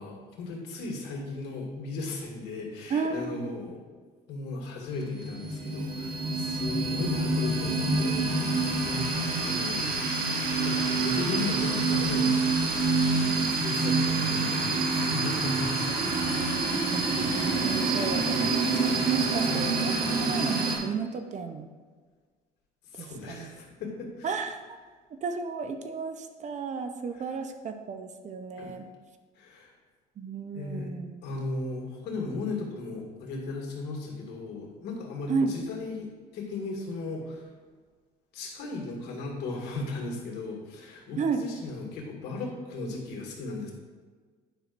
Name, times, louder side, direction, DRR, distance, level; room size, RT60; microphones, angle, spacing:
voice 1, 0.0-3.8 4.3-10.1 10.5-16.1 22.8-24.4 27.1-27.2 28.6-28.7 29.4-29.7 30.5-30.9 31.2-37.5 38.3-43.7, left 3 dB, 75° left, -1 dB, 2.1 m, -37 dB
voice 2, 2.9-3.6 9.2-10.0 14.3-15.0 16.9-21.7 23.0-23.5 24.2-24.8 25.2-28.8 30.2-31.1 35.3-35.5 41.2-41.5, right 5 dB, 45° right, 7 dB, 0.7 m, -34 dB
sound 1, 4.9-20.8, right 3 dB, 60° right, 1.5 m, -27 dB
10.0 x 5.8 x 2.6 m, 1.5 s
cardioid pair, 110°, 17 cm